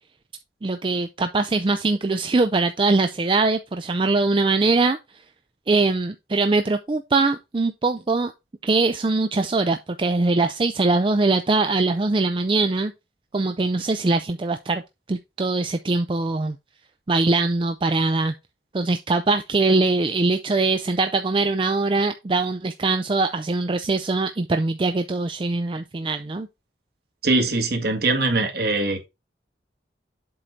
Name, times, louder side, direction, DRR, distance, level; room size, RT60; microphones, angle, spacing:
voice 1, 0.6-5.0 5.7-8.3 8.6-12.9 13.3-14.8 15.1-16.6 17.1-18.3 18.7-26.5, right 3 dB, 30° right, 0.4 m, -22 dB
voice 2, 27.2-29.1, right 2 dB, 60° right, 1.9 m, -22 dB
7.7 x 3.9 x 4.4 m
head